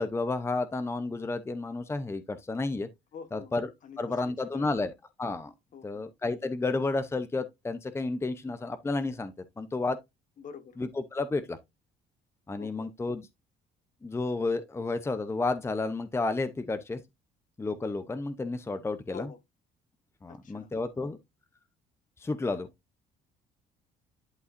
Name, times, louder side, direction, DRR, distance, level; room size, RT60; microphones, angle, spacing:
voice 1, 0.0-2.9 3.3-3.7 4.0-4.9 5.2-5.5 5.8-10.0 10.8-11.6 12.5-13.3 14.0-17.0 17.6-19.3 20.2-21.2 22.2-22.7, left 3 dB, 15° left, 0.7 m, -31 dB
voice 2, 3.1-3.5 3.8-4.8 5.7-6.0 10.4-10.8 12.6-12.9 19.1-19.4 20.3-20.7, left 6 dB, 50° left, 1.4 m, -46 dB
11.5 x 4.6 x 2.6 m
cardioid pair, 110°, 17 cm